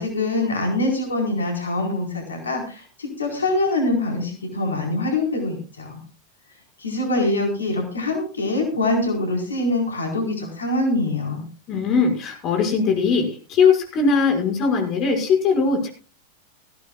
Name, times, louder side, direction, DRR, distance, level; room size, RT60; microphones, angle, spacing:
voice 1, 0.0-6.0 6.8-11.4, left 2 dB, 70° left, 1 dB, 4.5 m, -24 dB
voice 2, 11.7-15.9, left 5 dB, 35° left, 2 dB, 5.8 m, -20 dB
20.0 x 16.0 x 2.4 m, 0.37 s
figure-of-eight pair, 90°, 0 cm